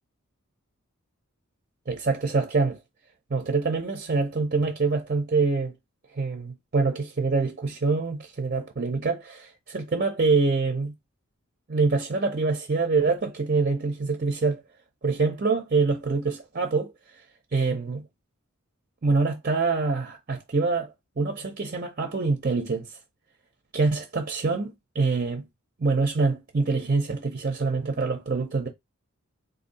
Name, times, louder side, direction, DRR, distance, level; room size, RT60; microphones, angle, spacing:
voice 1, 1.9-2.8 3.3-5.7 6.2-10.9 11.7-14.6 15.0-16.9 17.5-18.0 19.0-22.9 23.7-25.4 25.8-28.7, right 4 dB, 40° right, 0.7 m, -25 dB
4.0 x 2.7 x 4.0 m
head